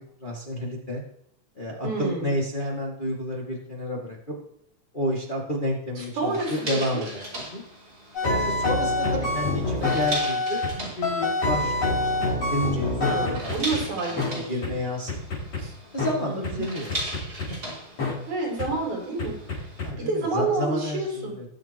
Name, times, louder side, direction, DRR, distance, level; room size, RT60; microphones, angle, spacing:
voice 1, 0.2-1.0 1.5-4.3 4.9-7.6 8.2-13.5 14.0-14.1 14.5-15.1 15.9-16.9 19.8-21.4, left 1 dB, 20° left, -3 dB, 1.8 m, -30 dB
voice 2, 1.8-2.3 6.0-7.0 13.0-14.7 15.6-15.7 16.3-16.7 18.3-19.7 20.0-21.4, right 3 dB, 75° right, -2 dB, 5.3 m, -29 dB
sound 1, 6.3-19.9, right 1 dB, 30° right, 4.0 m, -38 dB
sound 2, 8.1-10.7 11.0-13.8 14.2-14.3 14.6-14.7 15.1-15.6 16.0-16.1 16.4-16.5 16.9-17.5 18.0-18.1 18.6-18.7 19.2-19.9, left 2 dB, 60° left, 6.5 m, -26 dB
21.0 x 7.6 x 3.0 m, 0.72 s
omnidirectional pair, 3.4 m